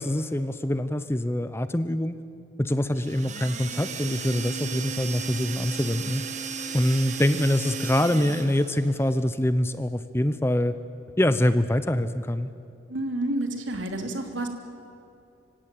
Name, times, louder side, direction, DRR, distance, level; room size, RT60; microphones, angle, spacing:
voice 1, 0.0-2.2 2.6-6.2 6.7-10.8 11.2-12.5, left 1 dB, 10° left, 12 dB, 0.6 m, -24 dB
sound 1, 3.0-8.8, right 5 dB, 35° right, 1.4 m, -35 dB
voice 2, 12.9-14.5, right 1 dB, 75° right, 5 dB, 2.9 m, -29 dB
26.0 x 16.5 x 9.0 m, 2.7 s
head